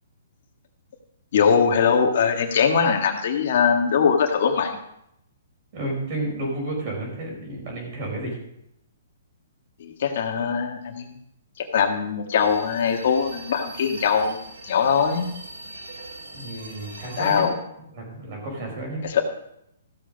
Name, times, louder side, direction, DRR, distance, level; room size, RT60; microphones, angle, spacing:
voice 1, 1.3-4.8 9.8-11.1 11.7-14.4 14.7-15.3 17.2-17.5 19.0-19.2, left 6 dB, 55° left, 2 dB, 1.6 m, -21 dB
voice 2, 5.7-8.4 16.3-17.5 17.8-19.1, right 1 dB, 40° right, 0 dB, 5.2 m, -31 dB
sound 1, 12.4-17.5, right 2 dB, 85° right, 3.6 m, -41 dB
15.0 x 6.8 x 5.2 m, 0.78 s
hypercardioid pair, 160°, 0 cm